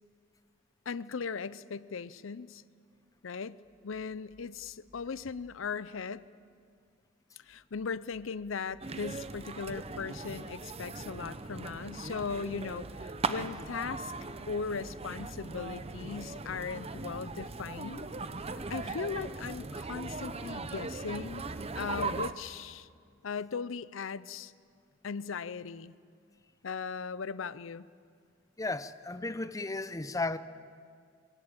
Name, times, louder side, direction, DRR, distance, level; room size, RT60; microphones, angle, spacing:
voice 1, 0.9-2.6 3.2-6.3 7.4-14.1 14.5-18.1 18.7-21.4 21.7-22.9 23.2-24.5 25.0-25.9 26.6-27.9, left 5 dB, 80° left, 17 dB, 0.6 m, -38 dB
sound 1, 3.6-5.6 7.4-9.4 11.3-13.2 15.1-18.9, equal, 10° right, 7.2 m, -65 dB
sound 2, 8.8-22.3, right 3 dB, 30° right, 0.7 m, -39 dB
voice 2, 28.6-30.4, left 3 dB, 15° left, 12 dB, 0.7 m, -34 dB
22.5 x 20.5 x 8.9 m, 2.1 s
head